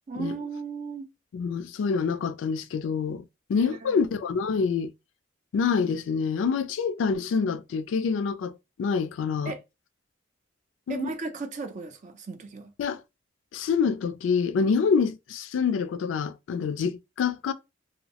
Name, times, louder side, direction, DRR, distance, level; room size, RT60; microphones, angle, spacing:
voice 1, 0.1-1.1 3.5-4.0 9.5-9.6 10.9-12.7, right 4 dB, 40° right, 0.4 m, -35 dB
voice 2, 1.3-3.2 3.5-4.9 5.5-9.6 10.9-11.1 12.8-13.0 13.5-17.5, left 5 dB, 85° left, 0.3 m, -26 dB
2.6 x 2.0 x 2.8 m
head